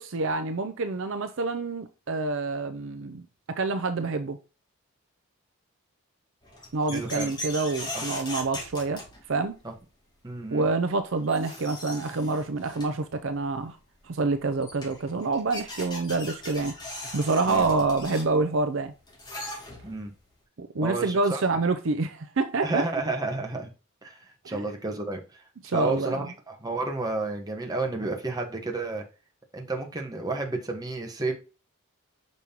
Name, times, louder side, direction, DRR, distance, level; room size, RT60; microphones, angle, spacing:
voice 1, 0.0-3.2 3.5-4.4 6.7-9.0 9.3-9.5 10.5-13.8 14.1-18.9 20.6-22.8 24.5-24.6 25.6-26.2, right 3 dB, 60° right, 0.5 m, -27 dB
sound 1, 6.4-9.6 10.9-11.0 11.2-13.1 14.2-14.3 14.6-20.1, left 1 dB, 20° left, 2.3 m, -39 dB
voice 2, 6.9-7.3 7.9-8.0 9.6-9.7 10.2-10.6 17.5-17.8 19.8-20.1 20.8-21.4 22.6-23.7 24.0-25.4 25.7-29.0 29.5-31.3, right 2 dB, 15° right, 1.2 m, -31 dB
6.2 x 5.3 x 2.9 m
head